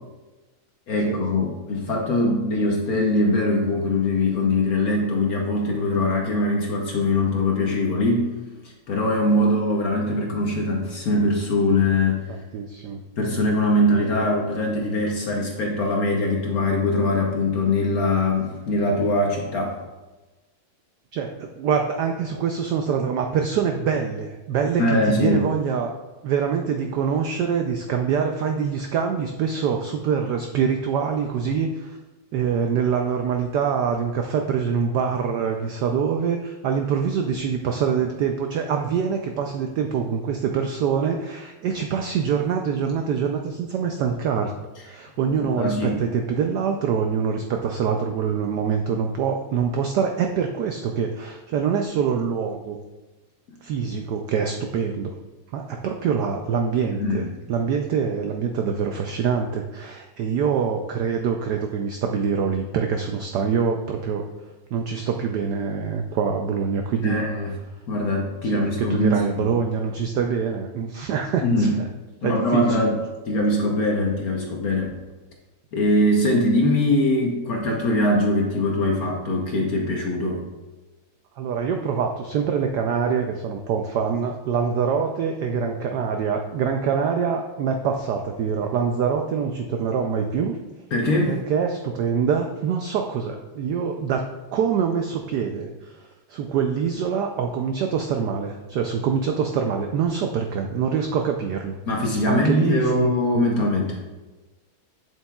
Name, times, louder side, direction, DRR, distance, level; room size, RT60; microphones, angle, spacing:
voice 1, 0.9-8.3 8.6-12.3 13.2-19.8 24.8-25.4 45.6-46.0 57.0-57.3 67.0-67.5 67.9-69.5 71.4-71.8 72.2-73.0 73.3-74.9 75.7-80.4 90.9-91.4 101.9-104.0, left 1 dB, 60° left, 0 dB, 1.0 m, -22 dB
voice 2, 12.3-13.0 14.2-14.3 21.1-25.9 26.2-32.0 32.3-44.5 44.8-52.8 53.6-55.1 55.5-64.3 64.7-67.2 68.4-71.7 72.2-72.9 81.4-90.6 91.3-95.9 96.3-101.8 102.3-103.1, right 6 dB, 90° right, 4 dB, 0.9 m, -25 dB
8.3 x 7.5 x 2.3 m, 1.2 s
omnidirectional pair, 2.3 m